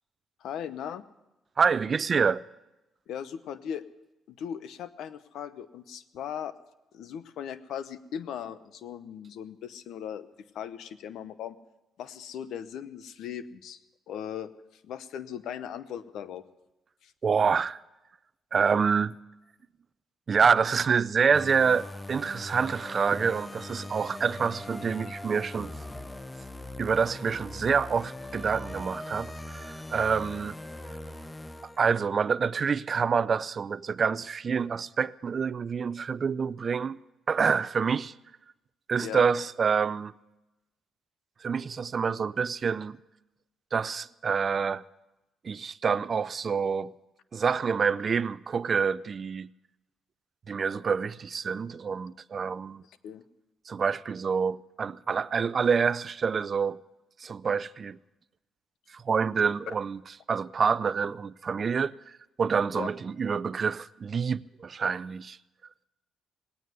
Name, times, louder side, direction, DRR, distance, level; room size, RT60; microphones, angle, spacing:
voice 1, 0.4-1.0 3.1-3.8 4.3-6.5 6.9-10.3 10.5-11.6 12.0-13.8 14.1-16.5 17.0-17.1 39.0-39.2 52.9-53.2 59.7-59.8 62.8-62.9, left 9 dB, 80° left, 0.8 m, -38 dB
voice 2, 1.6-2.4 17.2-17.8 18.5-19.2 20.3-25.7 26.8-30.6 31.8-37.0 37.3-38.1 38.9-40.1 41.4-43.0 43.7-44.8 45.4-46.9 47.3-49.5 50.5-52.8 53.7-56.8 57.2-58.0 58.9-60.0 60.3-61.9 62.4-65.4, right 6 dB, 45° right, 0.4 m, -27 dB
sound 1, 21.3-32.1, left 1 dB, 15° left, 0.6 m, -41 dB
19.0 x 9.3 x 8.1 m
cardioid pair, 90°, 0 cm